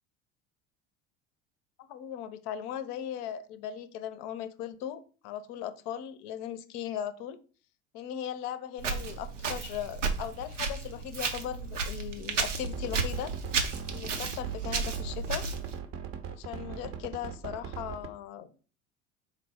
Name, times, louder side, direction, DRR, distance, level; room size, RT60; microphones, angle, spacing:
voice 1, 1.8-7.4 7.9-13.3 13.9-15.4 16.4-18.5, left 10 dB, 50° left, 12 dB, 0.5 m, -38 dB
Walk footsteps, 8.8-15.8, right 4 dB, 85° right, 0.6 m, -33 dB
sound 1, 12.5-18.1, right 7 dB, 40° right, 0.6 m, -39 dB
4.3 x 2.0 x 4.1 m, 0.38 s
figure-of-eight pair, 65°, 36 cm